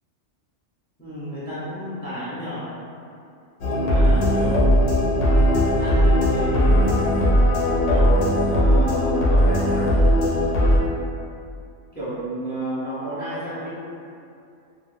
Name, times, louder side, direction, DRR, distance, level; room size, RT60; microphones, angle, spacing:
voice 1, 1.0-2.7 3.6-4.9 5.8-7.0 7.9-10.1 11.9-13.7, equal, 15° left, -10 dB, 0.4 m, -31 dB
sound 1, 3.6-10.8, equal, 75° left, 0.9 m, -18 dB
2.4 x 2.2 x 3.1 m, 2.5 s
omnidirectional pair, 1.3 m